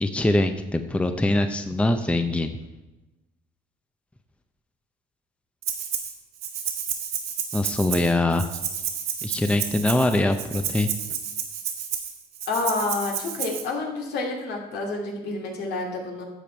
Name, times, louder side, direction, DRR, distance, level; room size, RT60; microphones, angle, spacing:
voice 1, 0.0-2.5 7.5-8.5 9.2-10.9, left 1 dB, 5° left, 8 dB, 0.6 m, -23 dB
Rattle (instrument), 5.6-6.1 6.4-13.6, right 8 dB, 75° right, 1.8 m, -31 dB
voice 2, 12.5-16.2, left 3 dB, 75° left, 0 dB, 2.5 m, -29 dB
11.0 x 7.0 x 4.5 m, 1.0 s
cardioid pair, 110°, 17 cm